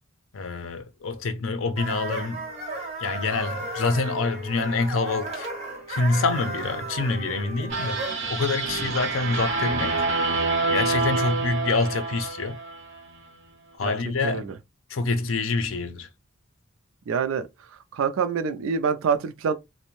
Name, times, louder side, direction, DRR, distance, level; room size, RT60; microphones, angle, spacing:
voice 1, 0.3-2.5 3.0-5.5 5.9-9.9 10.7-12.6 13.8-14.5 14.9-16.1, left 3 dB, 75° left, 0.5 m, -26 dB
sound 1, 1.8-8.3, right 2 dB, 30° right, 1.1 m, -34 dB
sound 2, 7.7-13.0, right 3 dB, 60° right, 0.9 m, -27 dB
voice 2, 14.2-14.5 17.1-17.5 17.9-19.5, right 6 dB, 80° right, 0.4 m, -25 dB
2.5 x 2.1 x 3.0 m
head